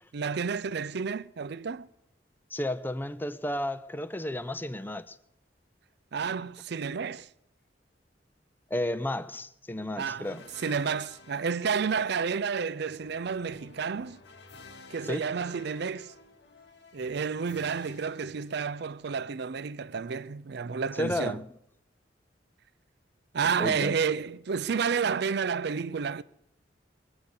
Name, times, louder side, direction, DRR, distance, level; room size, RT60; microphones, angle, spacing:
voice 1, 0.1-1.9 6.1-7.3 10.0-14.2 14.9-16.1 16.9-21.4 23.3-26.2, right 6 dB, 65° right, 0.5 m, -30 dB
voice 2, 2.5-5.2 8.7-10.4 15.0-15.3 21.0-21.5 23.6-23.9, left 1 dB, 10° left, 0.6 m, -32 dB
sound 1, 10.2-19.1, left 3 dB, 65° left, 1.3 m, -52 dB
21.0 x 8.0 x 7.2 m
head